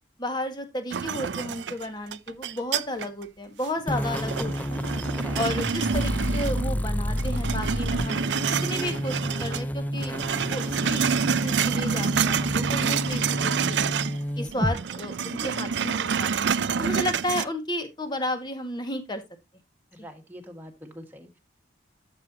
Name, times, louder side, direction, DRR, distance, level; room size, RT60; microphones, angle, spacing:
voice 1, 0.2-4.8 5.3-8.2 8.6-11.0 11.4-13.9 14.4-16.3 16.8-19.2, left 1 dB, 25° left, 7 dB, 1.8 m, -33 dB
sound 1, 0.9-3.2 3.6-6.8 7.1-9.6 9.9-14.2 14.5-17.4, right 6 dB, 85° right, 0.5 m, -28 dB
sound 2, 3.9-14.8, equal, 10° left, 0.4 m, -30 dB
voice 2, 15.4-15.7 19.9-21.4, equal, 10° right, 3 dB, 1.7 m, -44 dB
12.0 x 7.4 x 2.8 m, 0.21 s
head